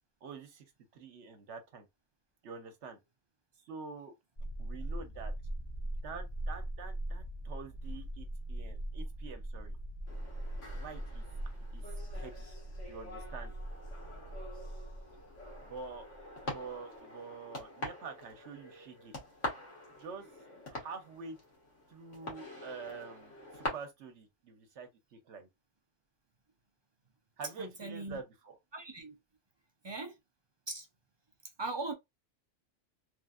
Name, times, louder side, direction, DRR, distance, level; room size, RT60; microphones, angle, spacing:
voice 1, 0.2-0.6 0.9-1.9 2.4-3.0 3.6-4.1 4.6-5.3 6.0-9.8 10.7-11.3 11.7-12.6 12.9-13.5 15.6-16.1 16.4-19.1 20.0-20.3 20.7-21.4 21.9-25.5 27.4-28.6, right 5 dB, 70° right, 1.1 m, -46 dB
sound 1, 4.4-16.6, right 1 dB, 45° left, 0.8 m, -41 dB
sound 2, 10.1-23.7, left 1 dB, 75° left, 1.6 m, -46 dB
voice 2, 27.6-28.2 28.7-29.2 29.8-30.1 30.7-30.9 31.6-31.9, right 3 dB, 35° right, 0.4 m, -39 dB
3.3 x 2.5 x 2.4 m
omnidirectional pair, 1.2 m